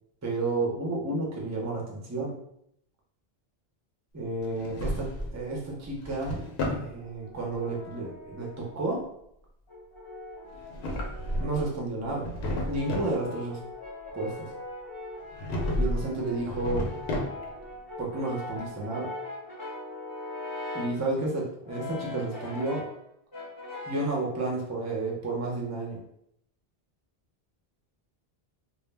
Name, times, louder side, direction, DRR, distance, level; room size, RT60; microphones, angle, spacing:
voice 1, 0.2-2.4 4.1-6.4 6.7-9.0 11.4-12.3 12.7-13.6 14.1-14.5 15.8-16.9 18.0-19.1 20.7-22.9 23.9-26.0, right 2 dB, 30° right, -1 dB, 0.3 m, -31 dB
Drawer open or close, 4.4-5.4 5.8-6.9 10.5-11.7 12.0-13.2 15.3-16.0 16.4-17.6, left 1 dB, 80° left, 0.8 m, -32 dB
Brass instrument, 7.0-8.9 9.7-11.7 12.4-21.1 21.6-23.0 23.3-24.2, left 2 dB, 25° left, 0.7 m, -41 dB
2.1 x 2.0 x 3.2 m, 0.74 s
omnidirectional pair, 1.1 m